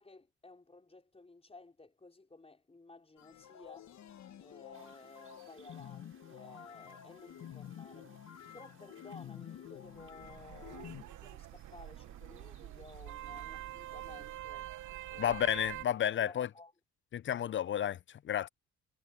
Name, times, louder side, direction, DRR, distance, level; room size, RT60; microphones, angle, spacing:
voice 1, 0.0-3.9 4.4-14.7 15.1-15.4 16.0-16.7, left 3 dB, 20° left, 4.9 m, -55 dB
sound 1, 3.2-11.0, left 10 dB, 65° left, 1.8 m, -50 dB
sound 2, 4.7-14.4, right 6 dB, 45° right, 7.0 m, -64 dB
sound 3, 9.9-15.8, right 14 dB, 80° right, 1.1 m, -46 dB
voice 2, 15.2-16.5 17.1-18.5, left 10 dB, 40° left, 0.5 m, -32 dB
cardioid pair, 90°, 30 cm